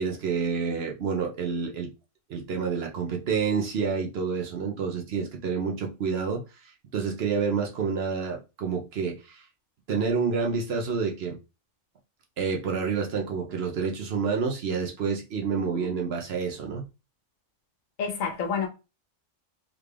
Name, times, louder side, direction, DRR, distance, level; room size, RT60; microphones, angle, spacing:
voice 1, 0.0-1.9 2.3-9.4 9.9-11.4 12.4-16.8, right 5 dB, 60° right, 0.8 m, -28 dB
voice 2, 15.5-15.9 18.0-18.7, left 6 dB, 80° left, 1.2 m, -30 dB
3.6 x 2.3 x 3.2 m
omnidirectional pair, 1.4 m